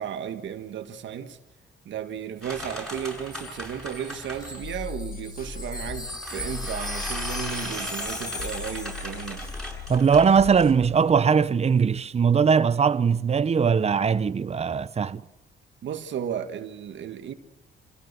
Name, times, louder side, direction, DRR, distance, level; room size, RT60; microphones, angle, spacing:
voice 1, 0.0-1.4 1.8-9.4 15.8-17.3, right 9 dB, 70° right, 1.6 m, -34 dB
sound 1, 2.4-4.8 5.8-11.2, equal, ahead, 7.9 m, -38 dB
Wind chime, 2.5-9.8 10.0-10.2, left 1 dB, 20° left, 2.9 m, -39 dB
sound 2, 4.6-10.8, left 6 dB, 45° left, 3.6 m, -38 dB
voice 2, 9.9-15.2, right 6 dB, 30° right, 0.8 m, -20 dB
27.5 x 16.5 x 6.9 m
cardioid pair, 90°, 20 cm